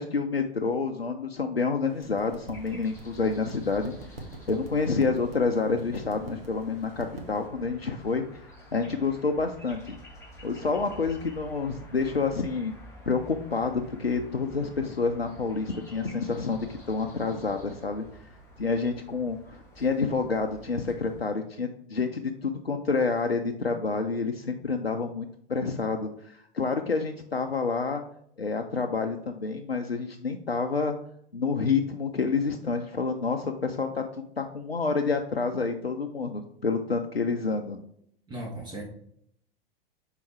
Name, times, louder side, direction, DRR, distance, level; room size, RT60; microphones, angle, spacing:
voice 1, 0.0-3.9 4.5-8.2 8.7-10.0 10.4-12.7 13.1-18.1 18.6-28.0 28.4-30.9 31.3-37.8, left 4 dB, 90° left, 5 dB, 0.5 m, -28 dB
sound 1, 1.9-7.5, right 2 dB, 75° right, 1.2 m, -45 dB
sound 2, 2.5-21.2, equal, 10° left, 2.0 m, -50 dB
voice 2, 38.3-38.8, right 1 dB, 15° right, -2 dB, 1.2 m, -36 dB
5.7 x 3.8 x 4.4 m, 0.69 s
figure-of-eight pair, 90°, 29 cm